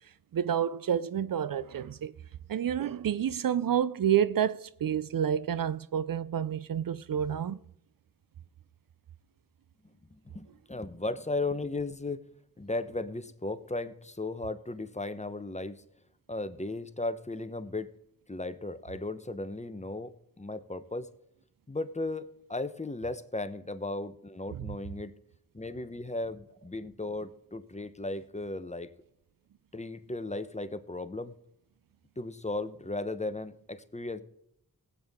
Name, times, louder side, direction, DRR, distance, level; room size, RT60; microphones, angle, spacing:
voice 1, 0.3-2.1 2.5-7.6 24.5-24.8, right 9 dB, 65° right, 0.5 m, -29 dB
voice 2, 10.1-12.3 12.6-15.8 16.3-17.9 18.3-21.1 21.7-25.1 25.5-28.9 29.7-31.3 32.2-34.2, left 2 dB, 20° left, 0.9 m, -36 dB
18.0 x 8.3 x 3.6 m
cardioid pair, 45°, 37 cm